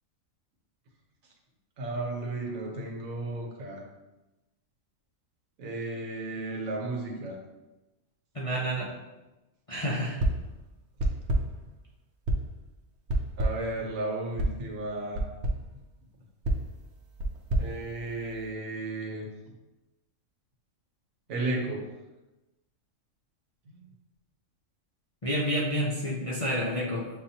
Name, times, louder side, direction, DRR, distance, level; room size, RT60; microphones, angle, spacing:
voice 1, 1.8-3.8 5.6-7.4 13.4-15.3 17.5-19.3 21.3-21.9 23.7-23.9, right 2 dB, 85° right, 1 dB, 1.3 m, -34 dB
voice 2, 8.3-8.9 9.7-10.2 25.2-27.1, equal, 40° left, -6 dB, 0.5 m, -29 dB
sound 1, 10.2-10.6 11.0-11.6 12.3-12.6 13.1-13.7 14.4-14.6 15.1-15.7 16.4-18.5, right 1 dB, 65° right, 0.8 m, -29 dB
7.3 x 2.5 x 2.8 m, 1.0 s
omnidirectional pair, 1.4 m